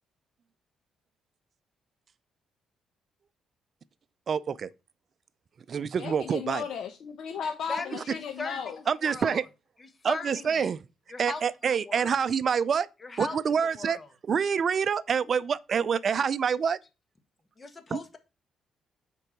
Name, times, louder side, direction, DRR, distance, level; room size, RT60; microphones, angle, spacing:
voice 1, 4.3-4.7 5.7-6.6 7.9-8.0 8.9-9.5 10.0-10.8 11.2-12.9 13.2-14.0 14.3-16.8 17.9-18.0, right 6 dB, 50° right, 0.5 m, -26 dB
voice 2, 6.0-8.8, left 7 dB, 70° left, 0.9 m, -35 dB
voice 3, 7.7-9.4 10.1-10.7 11.1-11.4 11.9-12.2 13.0-14.1 17.6-18.2, left 3 dB, 30° left, 1.6 m, -38 dB
6.7 x 4.6 x 6.0 m
cardioid pair, 90°, 0 cm